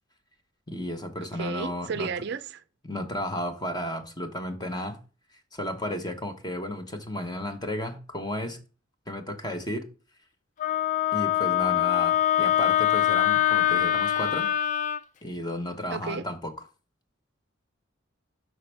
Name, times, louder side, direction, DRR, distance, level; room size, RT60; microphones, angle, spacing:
voice 1, 0.7-2.1 2.8-5.0 5.5-8.6 9.1-9.9 11.1-14.5 15.2-16.5, left 1 dB, 20° left, 0.9 m, -33 dB
voice 2, 1.2-2.6 15.9-16.3, right 5 dB, 60° right, 0.4 m, -33 dB
Wind instrument woodwind instrument, 10.6-15.0, left 12 dB, 40° left, 0.3 m, -23 dB
6.1 x 5.6 x 3.3 m
head